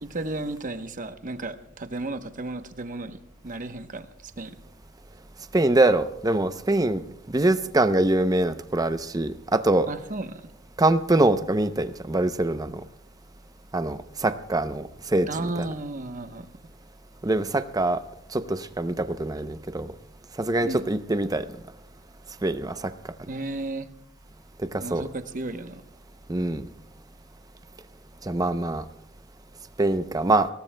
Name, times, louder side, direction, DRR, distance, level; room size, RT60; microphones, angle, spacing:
voice 1, 0.0-3.2 3.4-4.6 9.9-10.4 15.3-16.5 20.6-20.8 23.3-23.9 24.8-25.8, right 2 dB, 40° right, 8 dB, 0.9 m, -34 dB
voice 2, 5.5-7.0 7.3-9.9 10.8-12.8 13.7-15.3 15.6-15.7 17.2-18.0 18.3-19.9 20.4-21.5 22.4-22.8 24.7-25.0 26.3-26.7 28.2-28.8 29.8-30.5, right 2 dB, 20° right, 10 dB, 0.6 m, -24 dB
25.0 x 18.5 x 2.2 m, 0.81 s
head